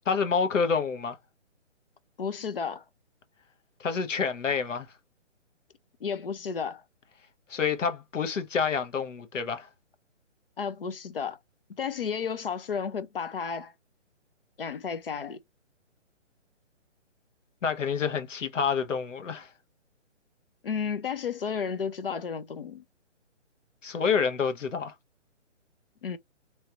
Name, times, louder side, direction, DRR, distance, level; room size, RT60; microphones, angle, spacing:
voice 1, 0.1-1.2 3.8-4.9 7.5-9.7 17.6-19.5 23.8-24.9, left 6 dB, 85° left, 1.0 m, -28 dB
voice 2, 2.2-2.8 6.0-6.8 10.6-11.4 11.7-13.7 14.6-15.4 20.6-22.8 26.0-26.2, left 6 dB, 50° left, 0.5 m, -32 dB
3.1 x 2.9 x 2.3 m
hypercardioid pair, 170°, 37 cm